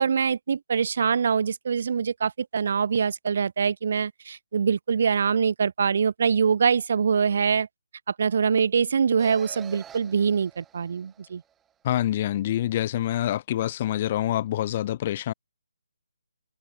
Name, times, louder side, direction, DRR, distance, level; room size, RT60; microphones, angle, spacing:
voice 1, 0.0-7.7 8.1-11.4, right 6 dB, 50° right, 2.7 m, -24 dB
sound 1, 9.2-11.7, right 9 dB, 10° right, 7.7 m, -47 dB
voice 2, 11.8-15.3, left 12 dB, 30° left, 1.1 m, -26 dB
figure-of-eight pair, 145°, 0 cm